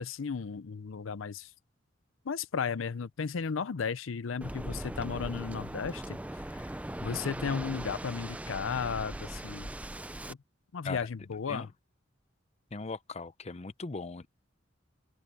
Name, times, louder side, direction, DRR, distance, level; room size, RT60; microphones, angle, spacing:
voice 1, 0.0-1.5 2.3-6.2 6.5-6.6 7.0-9.7 10.3-10.4 10.7-11.7, left 5 dB, 80° left, 0.6 m, -34 dB
Waves surf, 4.4-10.3, right 1 dB, 5° right, 0.5 m, -39 dB
voice 2, 12.7-14.3, left 3 dB, 35° left, 0.7 m, -39 dB
open air
head